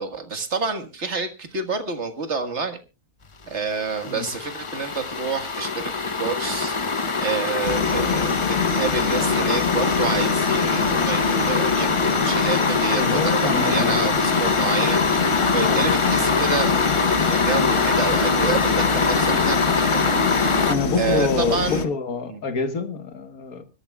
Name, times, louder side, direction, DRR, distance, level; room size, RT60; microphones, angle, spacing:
voice 1, 0.0-2.8 3.5-6.8 7.2-15.1 15.5-16.7 17.3-20.1 21.0-21.9 22.3-22.4, right 4 dB, 50° right, 8 dB, 1.9 m, -28 dB
sound 1, 3.6-20.7, left 4 dB, 25° left, 0.7 m, -23 dB
sound 2, 7.6-21.9, left 6 dB, 50° left, 1.3 m, -26 dB
voice 2, 13.0-14.1 15.7-15.9 20.7-23.6, left 4 dB, 70° left, 9 dB, 1.9 m, -26 dB
24.5 x 13.0 x 2.3 m, 0.29 s
omnidirectional pair, 1.6 m